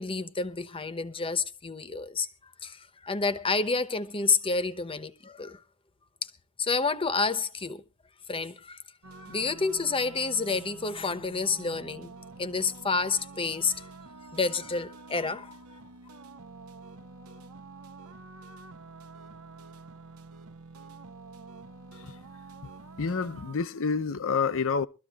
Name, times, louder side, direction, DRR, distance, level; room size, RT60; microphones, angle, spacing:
voice 1, 0.0-2.3 2.6-5.6 6.2-6.3 6.6-7.8 8.3-8.8 9.3-12.1 12.4-13.9 14.3-15.8, left 4 dB, 25° left, 0.9 m, -29 dB
sound 1, 9.0-23.6, right 3 dB, 85° right, 1.0 m, -48 dB
voice 2, 23.0-24.9, left 5 dB, 65° left, 0.7 m, -28 dB
23.5 x 13.5 x 2.4 m
head